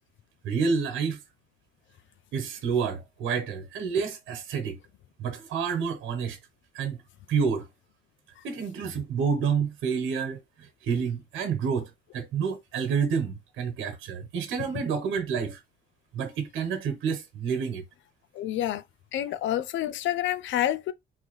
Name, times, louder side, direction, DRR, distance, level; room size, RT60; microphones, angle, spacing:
voice 1, 0.4-1.2 2.3-4.8 5.2-6.4 6.7-7.0 7.3-7.7 8.4-15.6 16.1-17.8, right 6 dB, 80° right, 1.0 m, -29 dB
voice 2, 18.3-18.8 19.1-20.9, left 12 dB, 70° left, 0.4 m, -28 dB
3.9 x 2.6 x 3.1 m
cardioid pair, 90°, 20 cm